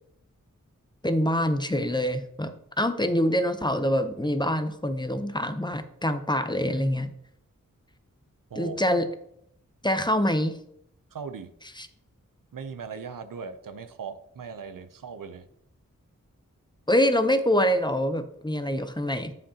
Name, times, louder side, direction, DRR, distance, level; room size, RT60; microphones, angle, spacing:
voice 1, 1.0-7.1 8.6-9.1 9.8-10.6 11.8-11.9 16.9-19.3, equal, 15° left, 9 dB, 0.7 m, -25 dB
voice 2, 11.1-11.5 12.5-15.5, right 5 dB, 85° right, 11 dB, 0.6 m, -38 dB
8.7 x 7.4 x 2.8 m, 0.74 s
cardioid pair, 45°, 32 cm